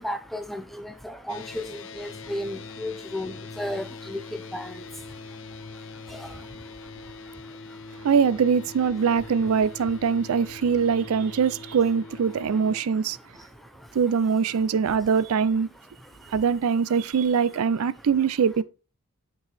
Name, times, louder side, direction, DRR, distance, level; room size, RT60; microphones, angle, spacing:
voice 1, 0.0-8.1 12.3-12.6 12.9-14.0 14.5-14.6 15.8-16.4 17.5-17.6 18.0-18.1, left 1 dB, ahead, 0.6 m, -37 dB
sound 1, 1.3-12.8, left 4 dB, 55° left, 0.5 m, -42 dB
voice 2, 8.0-13.2 13.9-15.7 16.3-18.6, right 6 dB, 80° right, 0.4 m, -23 dB
8.5 x 4.6 x 3.3 m
head